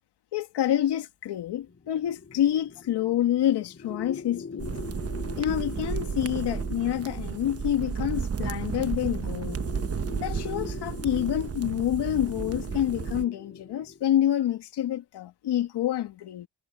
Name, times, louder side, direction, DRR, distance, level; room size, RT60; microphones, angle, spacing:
voice 1, 0.3-4.8 5.3-9.6 10.2-16.5, left 11 dB, 85° left, 2.0 m, -27 dB
sound 1, 1.6-14.1, left 5 dB, 35° left, 5.5 m, -43 dB
sound 2, 4.6-13.2, right 6 dB, 35° right, 1.1 m, -33 dB
cardioid pair, 85°, 39 cm